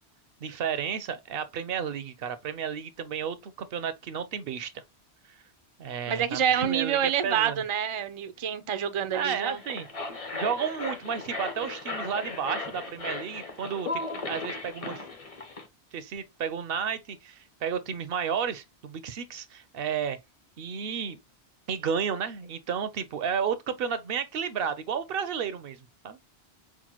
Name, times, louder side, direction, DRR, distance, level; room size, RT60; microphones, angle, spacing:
voice 1, 0.4-4.8 5.8-7.6 9.1-9.9 10.3-15.0 15.9-20.2 20.6-21.2 21.7-25.8 26.0-26.2, right 7 dB, 65° right, 0.7 m, -32 dB
voice 2, 6.1-9.6, right 9 dB, 50° right, 0.4 m, -27 dB
sound 1, 9.4-15.7, left 3 dB, 35° left, 0.8 m, -36 dB
5.9 x 2.2 x 2.8 m
omnidirectional pair, 1.1 m